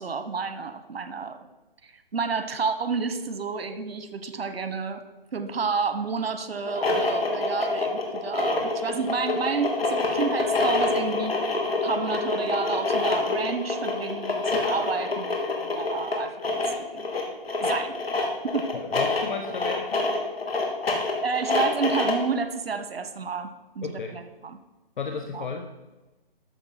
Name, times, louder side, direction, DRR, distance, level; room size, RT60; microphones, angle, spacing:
voice 1, 0.0-1.4 1.8-5.0 5.3-11.3 11.8-17.1 17.6-18.0 18.4-18.7 21.2-24.6 25.3-25.4, right 5 dB, 80° right, 9 dB, 1.3 m, -30 dB
sound 1, 6.6-22.3, left 3 dB, 80° left, 3.1 m, -26 dB
voice 2, 18.7-20.1 23.8-24.2 25.0-25.7, left 5 dB, 55° left, 4 dB, 1.2 m, -33 dB
13.5 x 6.5 x 5.8 m, 1.1 s
hypercardioid pair, 160°, 30 cm